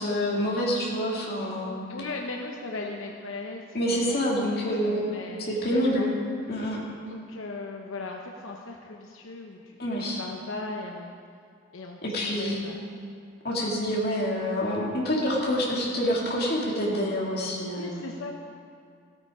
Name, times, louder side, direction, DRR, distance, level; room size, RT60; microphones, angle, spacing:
voice 1, 0.0-1.7 3.7-5.1 5.5-6.1 6.5-6.8 9.8-10.2 12.0-12.6 13.4-18.0, equal, 50° left, -4 dB, 2.5 m, -27 dB
voice 2, 1.9-4.5 4.8-6.1 7.1-11.2 11.7-12.8 17.7-18.3, left 3 dB, 90° left, 1 dB, 0.9 m, -38 dB
15.0 x 8.8 x 5.0 m, 2.3 s
head